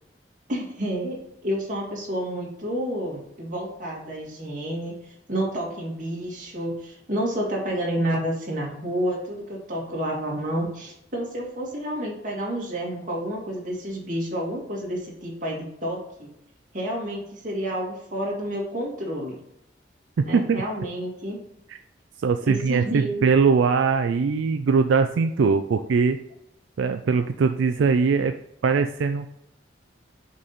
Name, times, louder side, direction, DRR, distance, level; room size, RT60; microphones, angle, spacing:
voice 1, 0.5-16.3 16.7-19.4 20.2-21.4 22.5-23.3, right 1 dB, 45° right, -3 dB, 2.1 m, -30 dB
voice 2, 20.2-20.6 21.7-21.8 22.2-26.2 26.8-28.3 28.6-29.3, right 5 dB, 85° right, 7 dB, 0.4 m, -21 dB
6.1 x 4.0 x 4.2 m, 0.79 s
head